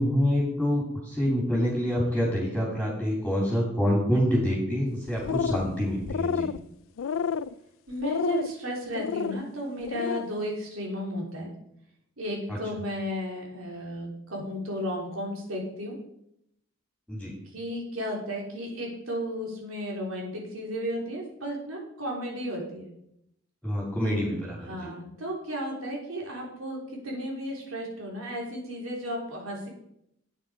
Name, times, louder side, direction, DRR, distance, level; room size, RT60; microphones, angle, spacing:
voice 1, 0.0-6.5 12.5-12.6 17.1-17.3 23.6-24.9, equal, ahead, -4 dB, 3.2 m, -26 dB
sound 1, 5.1-5.7 6.0-6.6 7.0-7.5 8.0-8.5 8.9-9.4 9.8-10.2, left 6 dB, 75° left, 0.4 m, -29 dB
voice 2, 7.9-11.5 12.2-16.0 17.4-22.9 24.6-29.7, equal, 85° right, -1 dB, 3.6 m, -34 dB
11.0 x 9.1 x 4.9 m, 0.78 s
head